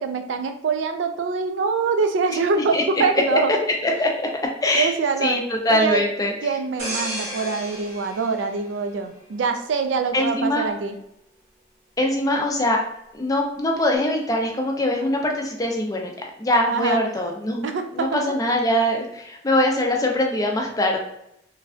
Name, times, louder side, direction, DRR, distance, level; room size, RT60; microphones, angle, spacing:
voice 1, 0.0-3.5 4.7-5.4 5.7-6.0 6.4-11.0 16.7-17.0 17.6-18.3, right 4 dB, 80° right, 7 dB, 0.4 m, -24 dB
voice 2, 2.3-2.8 3.3-3.4 3.8-4.3 4.6-4.9 5.2-6.3 10.1-10.7 12.0-12.8 13.1-16.1 16.4-17.7 17.9-21.0, left 1 dB, 20° left, 1 dB, 0.4 m, -22 dB
sound 1, 6.8-9.5 9.9-10.2, right 1 dB, 55° right, 1.3 m, -33 dB
3.1 x 2.4 x 2.4 m, 0.80 s
head